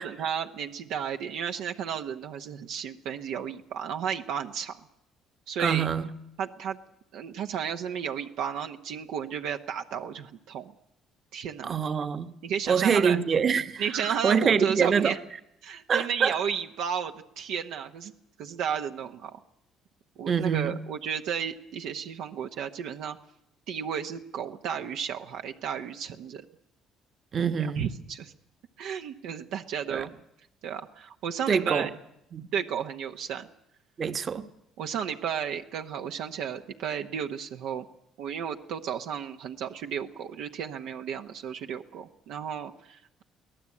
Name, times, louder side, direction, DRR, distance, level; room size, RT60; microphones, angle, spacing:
voice 1, 0.0-4.8 5.5-5.9 6.4-6.8 7.1-10.7 11.3-11.7 12.4-13.2 13.8-15.2 15.6-18.1 18.4-19.4 20.2-23.2 23.7-26.4 27.6-28.3 28.8-30.1 30.6-31.9 32.5-33.5 34.8-37.9 38.2-43.2, right 8 dB, 75° right, 5 dB, 1.0 m, -33 dB
voice 2, 5.6-6.1 11.6-12.3 12.7-15.1 15.9-16.4 20.3-20.8 27.3-27.9 29.9-30.0 31.5-31.9 32.3-32.5 34.0-34.5, right 6 dB, 45° right, 10 dB, 1.3 m, -25 dB
23.0 x 17.0 x 8.5 m, 0.80 s
supercardioid pair, 80°, 0 cm